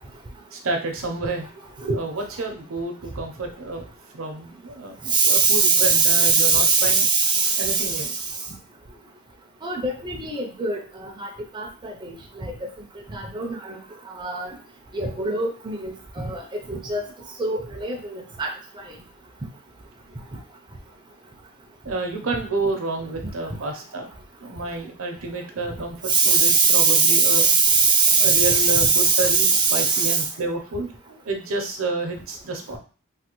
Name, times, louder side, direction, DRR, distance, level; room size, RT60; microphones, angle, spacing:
voice 1, 0.5-1.5 1.8-3.8 4.1-7.1 7.6-8.1 21.8-24.1 24.4-27.5 28.2-32.8, right 2 dB, 65° right, 3 dB, 0.6 m, -29 dB
voice 2, 5.1-8.1 9.6-11.3 11.5-12.5 13.1-13.8 14.2-14.5 14.9-16.4 16.7-17.0 17.4-18.5 26.1-30.2, right 5 dB, 20° right, 0 dB, 0.5 m, -21 dB
3.2 x 2.2 x 2.9 m, 0.37 s
head